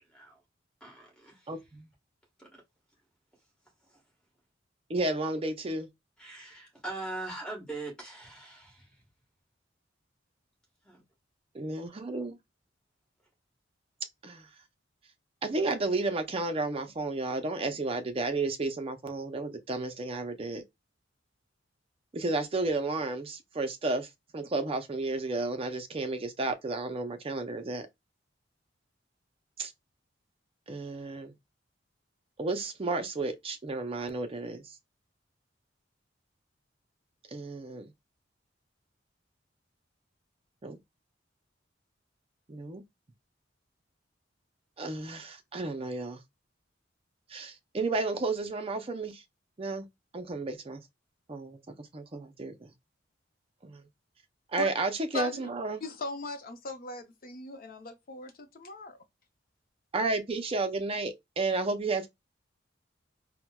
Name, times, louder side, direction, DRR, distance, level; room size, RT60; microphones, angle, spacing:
voice 1, 0.8-1.5 3.9-4.0 6.2-9.0 10.8-11.0, right 2 dB, 5° left, 1.3 m, -41 dB
voice 2, 1.5-1.9 4.9-5.9 11.5-12.4 14.2-14.5 15.4-20.6 22.1-24.1 24.3-27.9 29.6-29.7 30.7-31.3 32.4-34.6 37.3-37.9 40.6-40.8 42.5-42.8 44.8-46.2 47.3-49.2 49.6-49.9 50.1-50.8 51.3-52.7 53.6-53.8 54.5-55.8 59.9-62.1, right 3 dB, 30° right, 0.5 m, -32 dB
voice 3, 55.8-59.0, left 3 dB, 50° left, 0.6 m, -38 dB
4.3 x 2.1 x 2.2 m
head